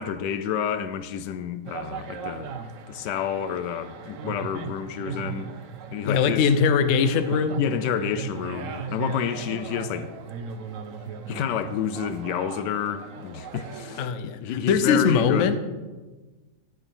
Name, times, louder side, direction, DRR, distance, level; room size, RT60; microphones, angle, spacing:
voice 1, 0.0-2.5 2.9-5.5 5.9-6.4 7.6-10.1 11.3-15.6, left 8 dB, 85° left, 1.3 m, -29 dB
sound 1, 1.6-14.1, right 5 dB, 60° right, 0.9 m, -37 dB
voice 2, 6.0-7.6 14.0-15.6, left 6 dB, 60° left, 0.9 m, -21 dB
14.0 x 6.5 x 4.5 m
omnidirectional pair, 1.8 m